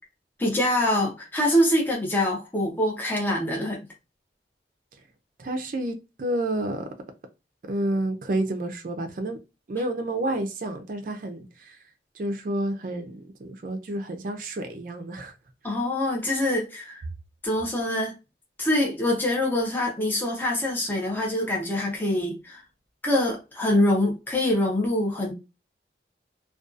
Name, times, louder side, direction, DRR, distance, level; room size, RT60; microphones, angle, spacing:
voice 1, 0.4-3.8 15.6-17.0 17.4-18.1 18.6-22.6 23.0-25.3, left 1 dB, 10° left, 0.6 m, -24 dB
voice 2, 5.4-6.9 7.7-9.4 9.7-11.8 12.2-15.3, right 1 dB, 50° right, 0.4 m, -30 dB
2.5 x 2.2 x 2.4 m
head